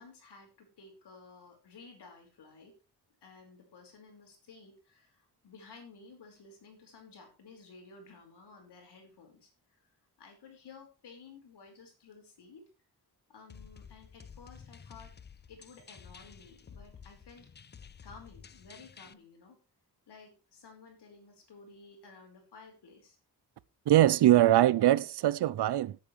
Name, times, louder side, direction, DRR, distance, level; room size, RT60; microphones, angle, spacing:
voice 1, 0.0-2.8 3.2-9.9 10.2-12.7 13.3-15.1 15.5-17.5 18.0-19.6 20.1-23.2, left 4 dB, 90° left, 4.9 m, -54 dB
sound 1, 13.5-19.1, left 6 dB, 25° left, 0.5 m, -52 dB
voice 2, 23.9-26.0, right 13 dB, 80° right, 0.6 m, -22 dB
17.5 x 8.7 x 3.2 m
wide cardioid pair, 150°, 39 cm